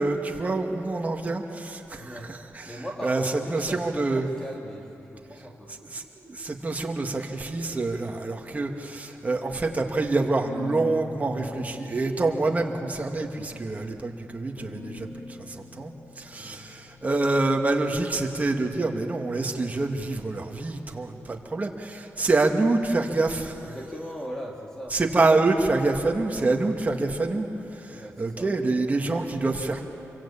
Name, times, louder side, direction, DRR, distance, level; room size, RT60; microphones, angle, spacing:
voice 1, 0.0-4.3 5.7-23.6 24.9-29.8, right 3 dB, 30° right, 2 dB, 2.4 m, -26 dB
voice 2, 1.9-2.3 2.6-5.7 9.1-9.3 16.4-16.6 23.6-25.0 27.9-28.5, equal, 10° left, -2 dB, 2.7 m, -39 dB
sound 1, 10.4-17.5, left 2 dB, 65° left, 3.2 m, -42 dB
27.5 x 23.5 x 8.8 m, 3.0 s
wide cardioid pair, 100°, 5 cm